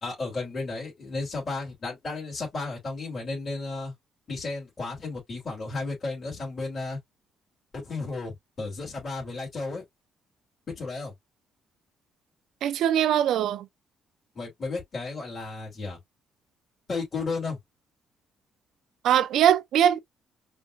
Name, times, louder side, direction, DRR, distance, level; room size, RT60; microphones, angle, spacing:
voice 1, 0.0-3.9 4.3-7.0 7.7-9.8 10.8-11.1 14.3-16.0 16.9-17.6, left 3 dB, 40° left, 3.1 m, -33 dB
voice 2, 12.6-13.7 19.0-20.0, right 10 dB, 75° right, 0.4 m, -21 dB
5.0 x 2.6 x 2.5 m
cardioid pair, 95°, 0 cm